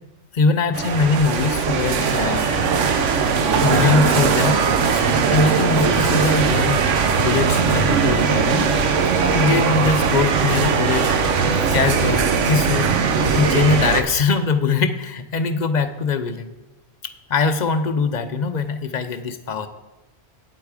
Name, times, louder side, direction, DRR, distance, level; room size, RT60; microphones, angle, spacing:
voice 1, 0.3-2.6 3.6-4.7 5.0-6.9 7.2-8.7 9.3-11.1 11.7-12.9 13.3-16.5 17.0-19.7, left 4 dB, 55° left, 10 dB, 0.5 m, -22 dB
sound 1, 0.7-14.0, right 5 dB, 80° right, 1.1 m, -19 dB
8.7 x 8.2 x 4.9 m, 1.0 s
omnidirectional pair, 1.3 m